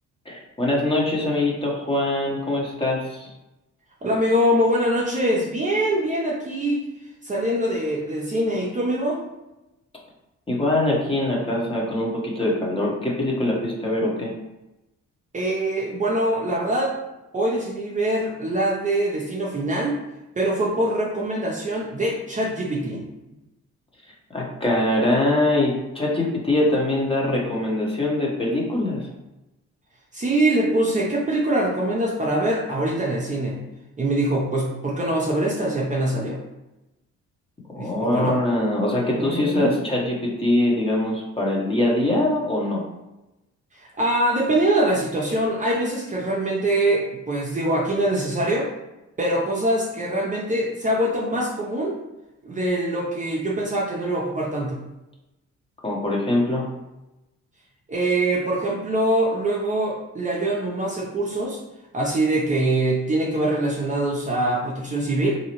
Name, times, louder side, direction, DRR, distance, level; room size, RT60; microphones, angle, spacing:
voice 1, 0.2-3.3 10.5-14.3 24.3-29.1 37.7-42.8 55.8-56.7, left 1 dB, 20° left, -3 dB, 1.1 m, -23 dB
voice 2, 4.0-6.8 7.2-9.2 15.3-16.9 17.3-20.0 20.4-23.0 30.1-33.6 34.0-36.4 37.8-38.4 39.2-39.8 43.8-48.7 49.2-51.9 52.4-54.8 57.9-61.6 61.9-65.4, right 1 dB, 25° right, -3 dB, 0.7 m, -23 dB
3.8 x 2.8 x 3.0 m, 0.97 s
cardioid pair, 90°, 30 cm